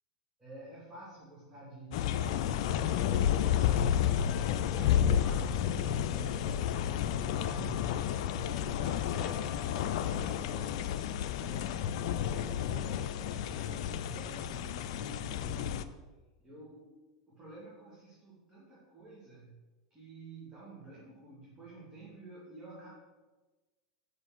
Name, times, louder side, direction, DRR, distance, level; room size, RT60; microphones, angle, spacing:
voice 1, 0.4-10.9 11.3-11.7 12.2-16.0 16.4-16.9 17.3-19.5 19.9-22.9, right 2 dB, 20° right, -7 dB, 2.4 m, -49 dB
sound 1, 1.9-15.8, left 9 dB, 65° left, 0.5 m, -31 dB
6.3 x 5.0 x 6.1 m, 1.2 s
hypercardioid pair, 105°, 4 cm